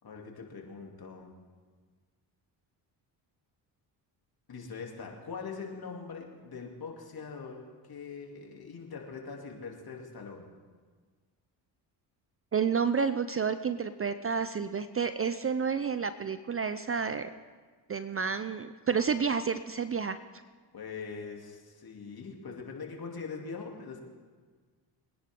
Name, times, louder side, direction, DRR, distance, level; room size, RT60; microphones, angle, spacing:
voice 1, 0.0-1.3 4.5-7.6 7.9-10.5 20.7-24.0, left 5 dB, 45° left, 0 dB, 3.0 m, -42 dB
voice 2, 12.5-17.3 17.9-20.2, right 6 dB, 25° right, 12 dB, 0.6 m, -30 dB
23.0 x 10.0 x 3.8 m, 1.5 s
supercardioid pair, 60°, 50 cm